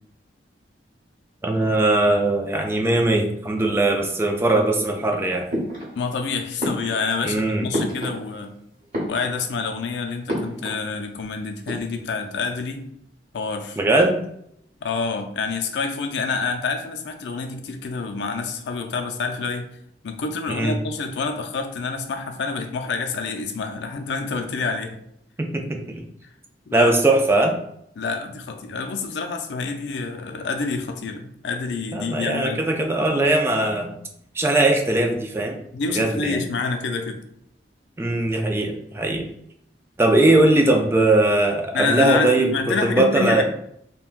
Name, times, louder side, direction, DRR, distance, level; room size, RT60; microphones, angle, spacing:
voice 1, 1.4-5.5 7.2-7.7 13.8-14.2 20.5-20.8 25.4-25.8 26.7-27.6 31.9-34.0 34.3-35.6 35.9-36.4 38.0-39.2 40.0-43.4, right 2 dB, 15° right, 3 dB, 0.3 m, -20 dB
sound 1, 5.5-6.2 6.6-8.5 8.8-9.7 10.3-10.9 11.1-11.2 11.5-12.2, equal, 45° right, 1.2 m, -30 dB
voice 2, 6.0-8.5 9.0-12.9 13.3-13.8 14.8-19.7 20.0-25.0 26.7-26.9 28.0-32.6 35.7-37.2 41.7-43.4, left 4 dB, 75° left, 5 dB, 0.4 m, -27 dB
3.5 x 2.2 x 2.4 m, 0.74 s
head